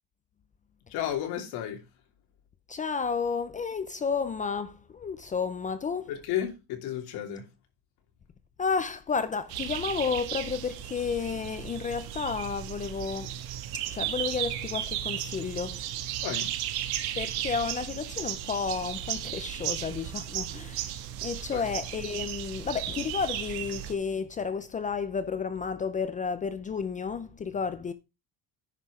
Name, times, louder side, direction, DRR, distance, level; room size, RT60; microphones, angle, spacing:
voice 1, 0.9-1.8 6.1-7.4 16.2-16.5 21.5-21.7, left 10 dB, 80° left, 3.2 m, -33 dB
voice 2, 2.7-6.1 8.6-13.3 13.9-15.9 17.2-20.9 21.2-27.9, left 5 dB, 20° left, 0.5 m, -32 dB
sound 1, 9.5-23.9, right 12 dB, 75° right, 1.6 m, -35 dB
10.0 x 5.8 x 4.8 m
cardioid pair, 170°, 38 cm